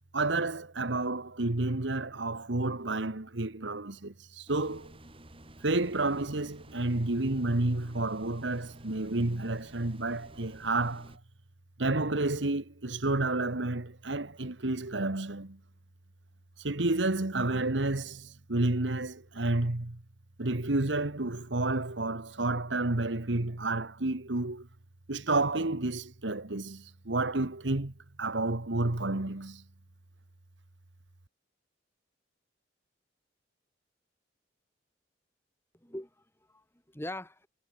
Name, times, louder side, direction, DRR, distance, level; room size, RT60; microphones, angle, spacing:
voice 1, 0.1-4.9 5.6-11.1 11.8-15.6 16.6-20.0 20.4-24.7 25.1-29.6, right 2 dB, 75° right, 1.6 m, -30 dB
sound 1, 4.5-11.2, right 1 dB, 30° right, 5.9 m, -52 dB
voice 2, 35.7-37.5, left 1 dB, 15° left, 4.1 m, -42 dB
head